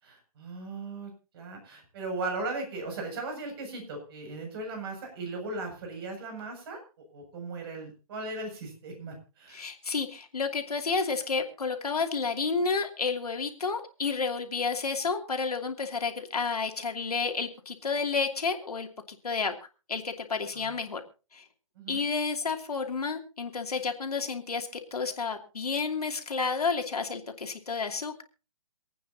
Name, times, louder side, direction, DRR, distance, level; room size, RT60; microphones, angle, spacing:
voice 1, 0.0-6.8 7.1-9.7 20.5-20.7 21.8-22.0, right 3 dB, 40° right, 3 dB, 7.2 m, -37 dB
voice 2, 9.5-19.5 19.9-21.0 21.3-21.4 21.9-28.2, left 4 dB, 85° left, 4 dB, 2.9 m, -31 dB
27.5 x 9.3 x 2.9 m, 0.34 s
hypercardioid pair, 150°, 19 cm